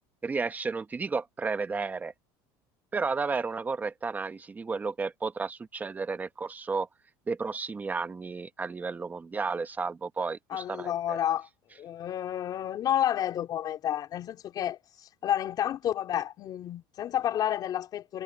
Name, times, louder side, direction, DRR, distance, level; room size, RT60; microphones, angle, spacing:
voice 1, 0.2-2.1 2.9-6.9 7.3-11.2, right 4 dB, 15° right, 1.1 m, -32 dB
voice 2, 10.5-11.5 11.8-18.2, left 11 dB, 40° left, 3.9 m, -30 dB
cardioid pair, 140°, 10 cm